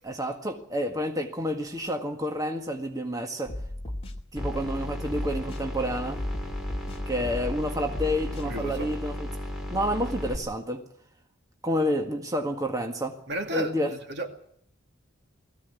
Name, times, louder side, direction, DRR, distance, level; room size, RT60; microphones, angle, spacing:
voice 1, 0.0-3.5 4.3-6.2 7.1-9.3 9.7-10.8 11.6-13.2 13.5-13.9, equal, 20° right, 1.8 m, -29 dB
sound 1, 3.5-4.8 5.1-5.6 6.2-7.6 7.9-8.5, left 1 dB, 30° left, 2.1 m, -35 dB
sound 2, 4.4-10.4, left 1 dB, ahead, 4.2 m, -35 dB
voice 2, 8.4-8.9 13.3-14.3, right 2 dB, 60° right, 2.4 m, -33 dB
20.5 x 15.5 x 9.3 m
head